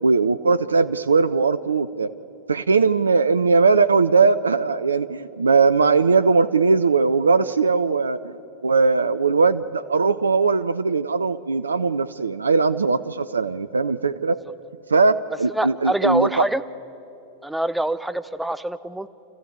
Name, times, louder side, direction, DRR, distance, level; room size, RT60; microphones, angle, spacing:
voice 1, 0.0-2.1 2.5-8.3 8.6-14.4 14.9-16.5, right 4 dB, 75° right, 13 dB, 0.4 m, -19 dB
voice 2, 15.5-16.6 17.4-19.1, right 1 dB, 5° right, 12 dB, 0.6 m, -24 dB
28.5 x 14.5 x 8.3 m, 2.8 s
figure-of-eight pair, 90°, 0 cm